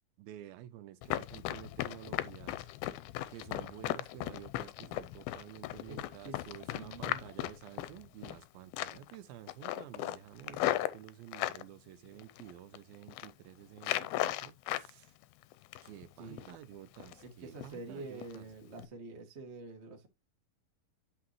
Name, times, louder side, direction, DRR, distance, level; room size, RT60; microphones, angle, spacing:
voice 1, 0.2-2.7 3.3-15.1 15.8-18.5, right 12 dB, 80° right, 2.3 m, -51 dB
Run, 1.0-8.4 8.7-9.2 9.5-11.6 12.2-12.8 13.0-13.3 13.8-14.9 15.2-16.0 16.4-16.6 17.0-17.3 17.6-17.8 18.2-18.4 18.7-18.9, left 15 dB, 80° left, 2.3 m, -36 dB
voice 2, 5.8-6.5 6.7-7.3 16.2-16.5 17.2-20.1, right 3 dB, 60° right, 0.6 m, -47 dB
10.0 x 5.8 x 3.1 m
omnidirectional pair, 4.6 m